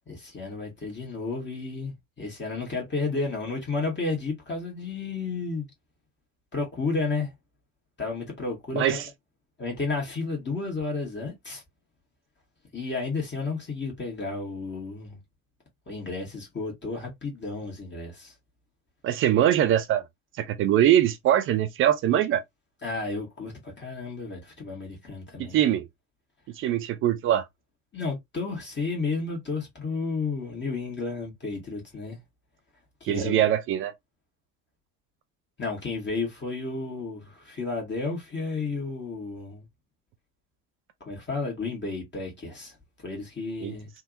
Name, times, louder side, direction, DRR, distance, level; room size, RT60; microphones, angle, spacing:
voice 1, 0.1-5.6 6.5-7.3 8.0-9.0 9.6-11.6 12.7-15.2 15.9-18.3 22.8-25.6 27.9-32.2 33.0-33.4 35.6-39.7 41.0-43.9, left 3 dB, 25° left, 1.6 m, -32 dB
voice 2, 19.0-20.0 20.4-22.4 25.5-25.8 26.6-27.4 33.1-33.9 43.6-43.7, right 11 dB, 30° right, 0.4 m, -22 dB
3.6 x 2.7 x 2.5 m
figure-of-eight pair, 60°, 45 cm